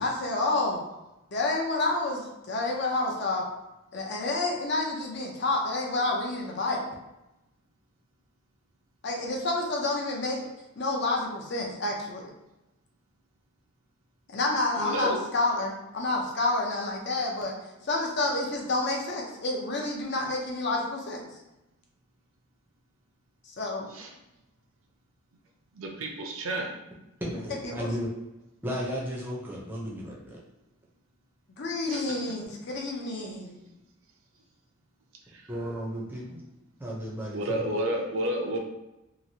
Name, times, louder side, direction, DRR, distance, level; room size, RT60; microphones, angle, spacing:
voice 1, 0.0-0.8 1.3-3.4 3.9-6.8 9.0-10.5 10.8-12.2 14.3-17.5 17.8-21.2 23.6-23.8 27.6-27.9 31.6-33.6, left 2 dB, 50° left, -1 dB, 0.6 m, -29 dB
voice 2, 14.8-15.2 23.9-24.1 25.7-26.7 31.9-32.1 35.3-35.5 37.3-38.6, right 1 dB, 65° right, 1 dB, 0.5 m, -31 dB
voice 3, 27.2-28.1 28.6-30.4 35.5-36.4 36.8-37.6, equal, 10° right, -4 dB, 0.5 m, -34 dB
2.9 x 2.5 x 2.7 m, 0.93 s
head